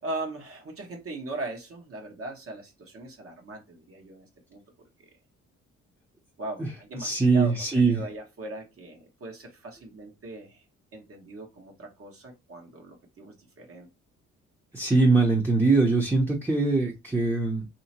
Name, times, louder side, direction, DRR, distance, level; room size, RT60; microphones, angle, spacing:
voice 1, 0.0-4.6 5.0-5.1 6.4-10.6 10.9-13.9, right 2 dB, 50° right, 2 dB, 1.2 m, -39 dB
voice 2, 7.0-8.0 14.7-17.7, right 3 dB, 10° right, 0 dB, 0.8 m, -22 dB
3.1 x 2.9 x 2.8 m, 0.23 s
cardioid pair, 90°, 30 cm